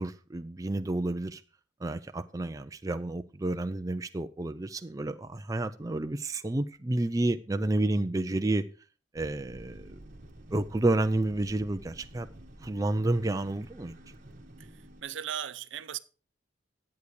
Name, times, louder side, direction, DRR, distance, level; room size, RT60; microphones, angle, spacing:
voice 1, 0.0-1.4 1.8-8.6 9.1-10.0 10.5-12.3 12.6-13.9, right 2 dB, 15° right, 0.4 m, -30 dB
sound 1, 9.1-15.0, right 1 dB, 45° right, 1.5 m, -50 dB
voice 2, 14.6-16.0, right 9 dB, 70° right, 0.6 m, -38 dB
10.5 x 8.3 x 4.8 m
head